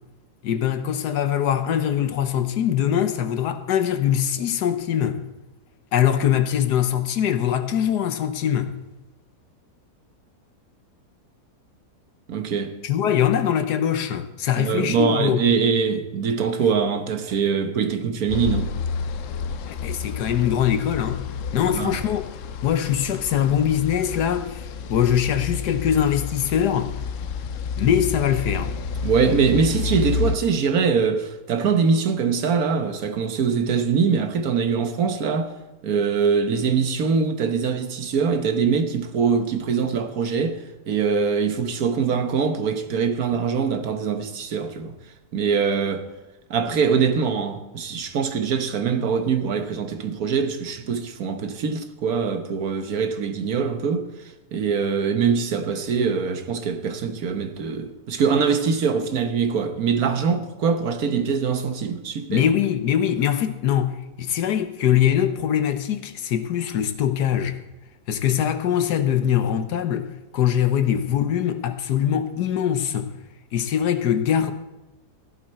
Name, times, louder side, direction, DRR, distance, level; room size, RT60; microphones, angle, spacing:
voice 1, 0.4-5.2 5.9-8.8 12.8-15.4 19.7-21.2 21.5-22.3 22.6-26.9 27.8-28.8 62.3-67.6 68.1-70.1 70.3-73.1 73.5-74.5, left 9 dB, 80° left, 1.5 m, -22 dB
voice 2, 12.3-12.8 14.6-18.7 21.6-22.0 29.0-35.5 35.8-44.9 45.3-46.1 46.5-62.5, right 6 dB, 65° right, 1.4 m, -23 dB
sound 1, 18.3-30.4, left 5 dB, 65° left, 0.8 m, -30 dB
15.5 x 11.5 x 4.3 m
omnidirectional pair, 1.7 m